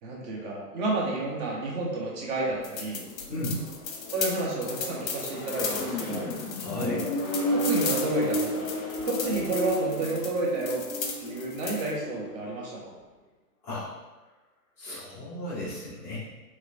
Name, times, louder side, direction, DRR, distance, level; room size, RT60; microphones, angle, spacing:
voice 1, 0.0-3.0 4.1-6.3 6.7-7.1 7.5-8.7 9.0-10.8 11.2-12.9, right 2 dB, 25° right, -3 dB, 0.8 m, -30 dB
Accelerating revving vroom, 2.3-12.7, left 1 dB, 45° left, 1.1 m, -33 dB
sound 1, 2.6-11.9, left 5 dB, 60° left, 0.7 m, -36 dB
voice 2, 6.6-7.0 13.6-13.9 14.8-16.2, left 1 dB, 5° left, -13 dB, 0.4 m, -34 dB
3.1 x 2.9 x 2.4 m, 1.2 s
figure-of-eight pair, 115°, 48 cm